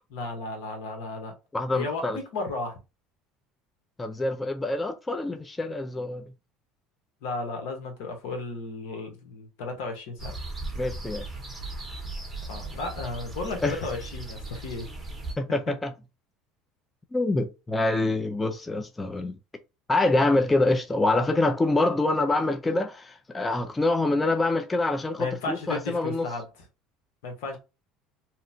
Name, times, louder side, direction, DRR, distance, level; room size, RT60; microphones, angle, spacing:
voice 1, 0.1-1.3 1.7-2.8 7.2-10.3 12.5-14.9 25.2-26.5 27.2-27.6, left 3 dB, 80° left, 0.9 m, -34 dB
voice 2, 1.5-2.2 4.0-6.3 10.8-11.2 13.6-13.8 15.4-15.9 17.1-19.4 19.9-26.3, left 2 dB, 15° left, 0.4 m, -25 dB
sound 1, 10.2-15.3, right 2 dB, 10° right, 0.9 m, -37 dB
2.8 x 2.1 x 2.6 m
supercardioid pair, 110°, 0 cm